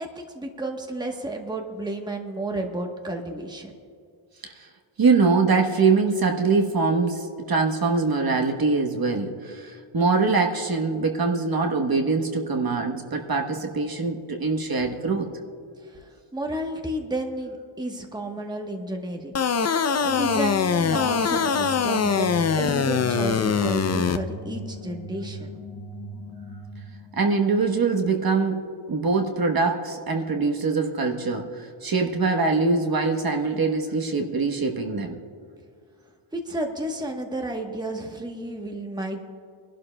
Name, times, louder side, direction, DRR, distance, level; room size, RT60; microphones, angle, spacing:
voice 1, 0.0-3.7 15.8-19.3 20.0-22.3 22.6-25.5 36.3-39.3, right 1 dB, 10° right, 3 dB, 1.0 m, -32 dB
voice 2, 5.0-15.3 27.2-35.2, right 4 dB, 45° right, 2 dB, 1.1 m, -23 dB
sound 1, 19.4-24.2, left 6 dB, 35° left, 0.5 m, -23 dB
sound 2, 20.0-27.3, right 1 dB, 80° left, 1.6 m, -39 dB
24.5 x 11.5 x 2.2 m, 2.3 s
wide cardioid pair, 90°, 49 cm